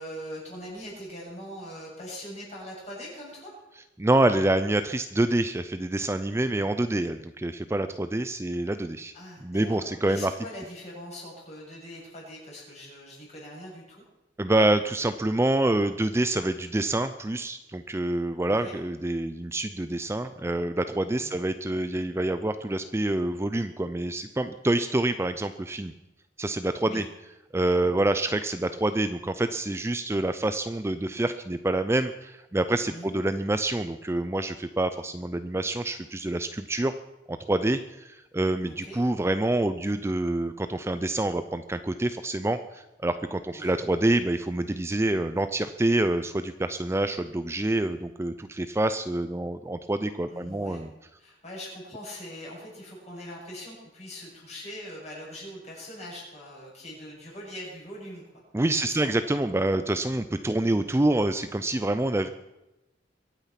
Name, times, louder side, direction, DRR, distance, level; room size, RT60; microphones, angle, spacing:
voice 1, 0.0-3.5 9.1-14.0 18.5-18.8 21.2-21.5 26.8-27.0 28.6-28.9 32.9-33.2 38.6-39.0 43.5-43.7 50.3-50.8 51.2-58.2 58.7-59.0 60.7-60.9, equal, 40° left, -4 dB, 7.4 m, -42 dB
voice 2, 4.0-9.1 9.4-10.3 14.4-25.9 26.4-27.0 27.5-36.9 37.3-50.9 58.5-62.3, right 1 dB, 15° right, 10 dB, 0.5 m, -27 dB
23.0 x 9.1 x 5.8 m, 0.98 s
head